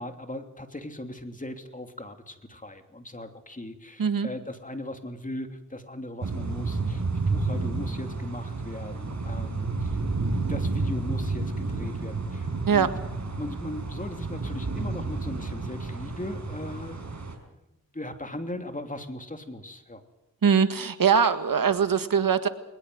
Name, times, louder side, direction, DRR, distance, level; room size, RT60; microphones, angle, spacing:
voice 1, 0.0-10.0 10.3-12.9 13.4-17.0 17.5-17.6 17.9-20.0, left 1 dB, 20° left, 6 dB, 3.0 m, -38 dB
voice 2, 4.0-4.3 12.7-12.9 20.4-22.5, right 6 dB, 65° right, 10 dB, 1.8 m, -22 dB
sound 1, 6.2-17.3, right 3 dB, 50° right, 5.1 m, -30 dB
22.0 x 20.5 x 7.9 m, 0.90 s
cardioid pair, 65°, 36 cm